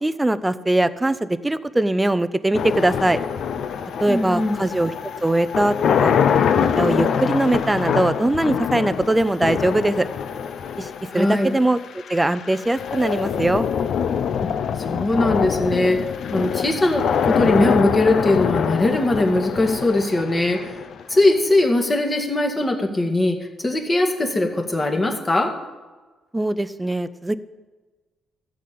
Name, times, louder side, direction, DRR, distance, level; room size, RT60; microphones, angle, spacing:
voice 1, 0.0-3.2 4.0-4.9 5.2-6.1 6.7-10.1 10.8-11.8 12.1-13.7 26.3-27.4, right 1 dB, 10° right, 13 dB, 0.6 m, -21 dB
sound 1, 2.5-21.6, left 7 dB, 65° left, 0.7 m, -24 dB
voice 2, 4.1-4.6 11.1-11.6 14.4-14.5 14.9-20.7 21.1-23.4 23.6-25.5, left 2 dB, 25° left, 3 dB, 2.0 m, -20 dB
14.0 x 5.2 x 8.7 m, 1.3 s
cardioid pair, 90°, 0 cm